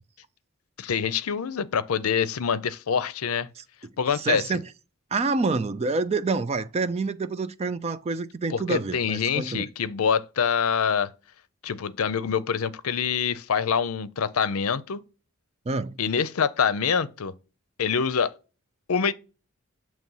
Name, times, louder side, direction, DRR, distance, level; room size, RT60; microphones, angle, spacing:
voice 1, 0.8-3.5 4.0-4.6 8.5-11.1 11.6-15.0 16.0-17.3 17.8-18.3 18.9-19.1, left 6 dB, 85° left, 0.5 m, -25 dB
voice 2, 4.1-4.6 5.1-9.7 15.7-16.0, right 4 dB, 30° right, 0.4 m, -27 dB
7.4 x 3.1 x 5.4 m
head